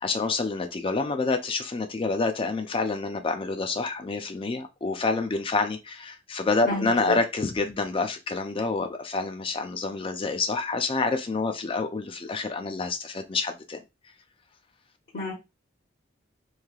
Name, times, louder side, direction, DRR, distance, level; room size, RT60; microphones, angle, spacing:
voice 1, 0.0-13.8, left 3 dB, 30° left, 0.4 m, -28 dB
voice 2, 6.7-7.2 15.1-15.3, left 2 dB, 55° left, 1.1 m, -30 dB
3.2 x 2.7 x 2.3 m
head